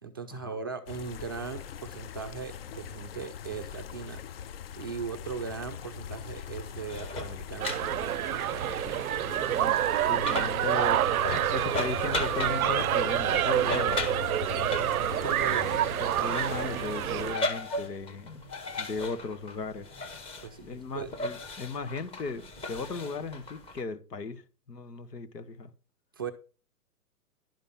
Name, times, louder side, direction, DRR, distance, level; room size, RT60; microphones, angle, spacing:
voice 1, 0.0-4.2 4.8-7.7 15.2-15.8 20.4-21.1 26.2-26.3, right 5 dB, 15° right, 0.4 m, -38 dB
sound 1, 0.9-17.3, left 8 dB, 40° left, 0.6 m, -40 dB
sound 2, 6.9-23.8, left 2 dB, 10° left, 1.0 m, -38 dB
sound 3, 7.6-17.4, right 13 dB, 65° right, 0.5 m, -28 dB
voice 2, 10.1-11.2 11.5-14.0 16.0-19.9 20.6-24.4 24.7-25.7, left 4 dB, 90° left, 1.8 m, -36 dB
11.5 x 5.5 x 5.5 m
hypercardioid pair, 145°, 47 cm